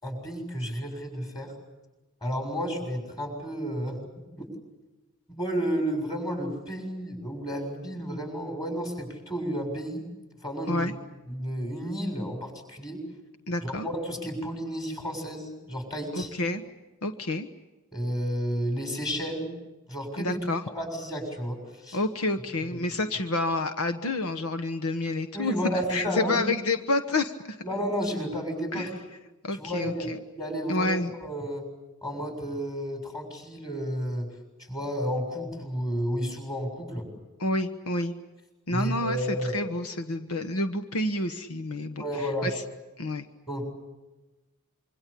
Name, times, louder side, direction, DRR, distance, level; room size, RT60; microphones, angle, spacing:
voice 1, 0.0-1.5 2.2-4.0 5.3-10.1 10.4-10.9 11.3-13.0 13.6-16.3 17.9-19.5 19.9-20.4 20.7-22.0 22.9-23.0 25.3-26.4 27.6-28.9 29.5-30.1 30.4-31.6 32.0-34.3 34.7-37.1 38.7-39.6 42.0-42.5 43.5-43.6, equal, 20° left, 4 dB, 6.8 m, -31 dB
voice 2, 13.5-13.9 16.1-16.6 17.0-17.5 20.2-20.6 21.9-25.5 25.9-27.6 28.7-28.9 29.4-30.2 30.7-31.1 37.4-38.1 38.7-39.2 39.5-42.6 43.0-43.3, left 2 dB, 80° left, 9 dB, 1.3 m, -29 dB
26.0 x 24.5 x 8.5 m, 1.1 s
head